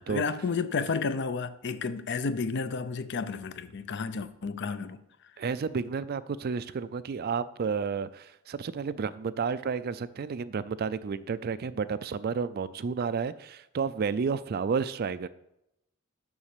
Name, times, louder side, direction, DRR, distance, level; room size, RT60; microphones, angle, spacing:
voice 1, 0.1-5.0, left 4 dB, 55° left, 0.5 m, -31 dB
voice 2, 5.4-15.3, right 5 dB, 45° right, 0.4 m, -31 dB
7.2 x 6.2 x 6.6 m
head